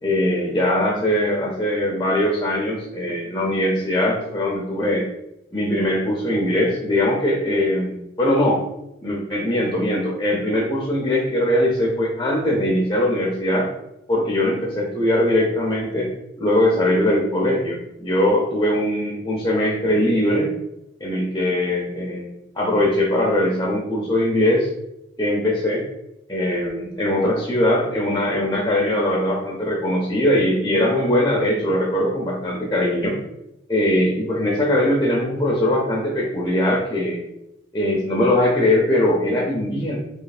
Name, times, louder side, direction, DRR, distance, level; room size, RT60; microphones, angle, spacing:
voice 1, 0.0-5.0 5.5-8.6 9.0-13.7 14.1-16.1 16.4-20.5 21.0-24.7 25.2-25.8 26.3-33.2 33.7-37.2 37.7-40.0, left 1 dB, 20° left, -2 dB, 0.7 m, -21 dB
3.2 x 3.1 x 4.2 m, 0.88 s
head